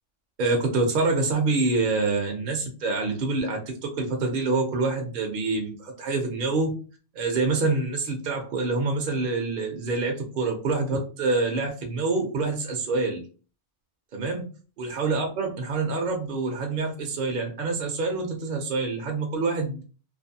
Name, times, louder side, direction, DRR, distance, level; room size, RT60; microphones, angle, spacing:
voice 1, 0.4-6.7 7.1-13.2 14.1-14.5 14.8-19.8, right 3 dB, 55° right, 2 dB, 0.6 m, -26 dB
2.6 x 2.5 x 2.6 m, 0.37 s
omnidirectional pair, 1.2 m